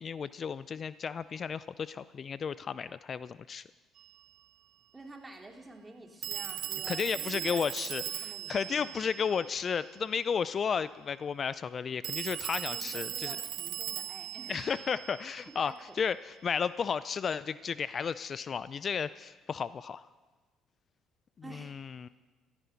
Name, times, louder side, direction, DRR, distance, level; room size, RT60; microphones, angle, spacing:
voice 1, 0.0-3.6 6.9-13.4 14.5-20.1 21.5-22.1, left 6 dB, 45° left, 16 dB, 0.4 m, -33 dB
Telephone, 4.0-4.1 6.2-9.9 12.0-15.7, right 11 dB, 70° right, 1.1 m, -39 dB
voice 2, 4.9-9.0 12.7-14.6 15.6-16.0 21.4-21.8, right 2 dB, 20° right, 2 dB, 2.7 m, -49 dB
14.5 x 13.0 x 5.8 m, 1.3 s
supercardioid pair, 65°, 0 cm